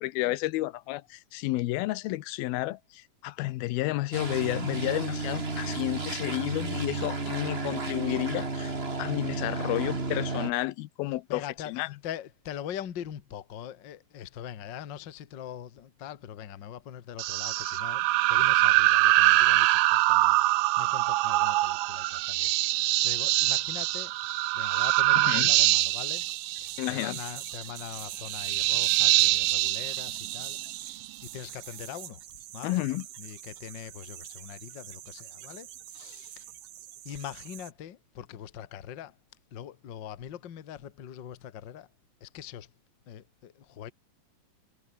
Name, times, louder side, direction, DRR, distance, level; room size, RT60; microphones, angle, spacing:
voice 1, 0.0-8.7 9.0-11.9 25.2-25.5 26.8-27.2 32.6-33.1, left 18 dB, 90° left, 2.7 m, -31 dB
sound 1, 4.1-10.5, right 3 dB, 20° right, 2.3 m, -32 dB
voice 2, 11.3-11.7 12.0-24.1 24.5-31.0 31.3-32.2 32.5-32.8 33.2-35.7 35.9-36.4 37.0-39.1 39.5-41.9 42.2-42.7 43.1-43.9, left 10 dB, 50° left, 1.3 m, -42 dB
sound 2, 17.2-31.1, right 18 dB, 85° right, 2.7 m, -24 dB
sound 3, 25.8-37.7, right 12 dB, 70° right, 3.0 m, -45 dB
omnidirectional pair, 4.2 m